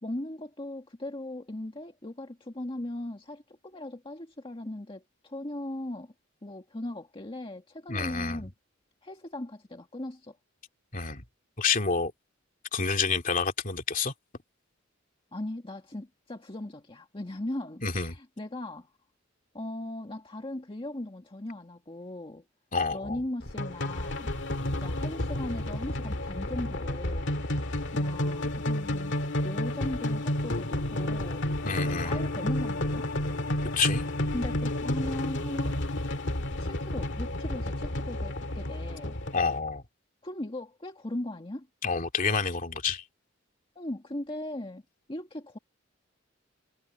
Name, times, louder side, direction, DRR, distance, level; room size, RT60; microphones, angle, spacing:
voice 1, 0.0-6.1 6.4-8.5 9.0-10.4 15.3-18.9 19.5-22.5 22.9-24.3 24.8-27.3 27.9-29.1 29.4-31.4 32.0-33.1 34.3-35.8 36.6-39.2 40.2-41.7 43.8-44.8 45.1-45.6, left 1 dB, 25° left, 1.8 m, -38 dB
voice 2, 7.9-8.4 10.9-11.2 11.6-12.1 12.7-14.1 17.8-18.1 22.7-23.2 31.6-32.2 33.8-34.0 39.3-39.8 41.8-43.0, left 5 dB, 45° left, 2.6 m, -28 dB
sound 1, 23.4-39.6, left 1 dB, 65° left, 2.0 m, -31 dB
head